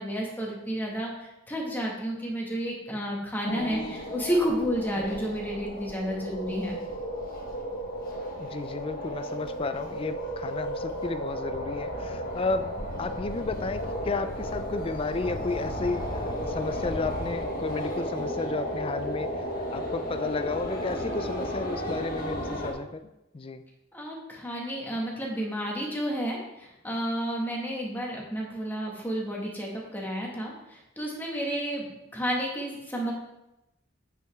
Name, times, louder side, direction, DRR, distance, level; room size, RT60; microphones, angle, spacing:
voice 1, 0.0-6.8 23.9-31.8 32.1-33.1, equal, 10° left, -2 dB, 1.7 m, -31 dB
sound 1, 3.4-22.7, equal, 50° left, 1.5 m, -34 dB
voice 2, 8.3-12.7 13.0-23.0 23.3-23.6, left 3 dB, 30° left, 10 dB, 0.4 m, -32 dB
8.5 x 6.0 x 3.6 m, 0.90 s
head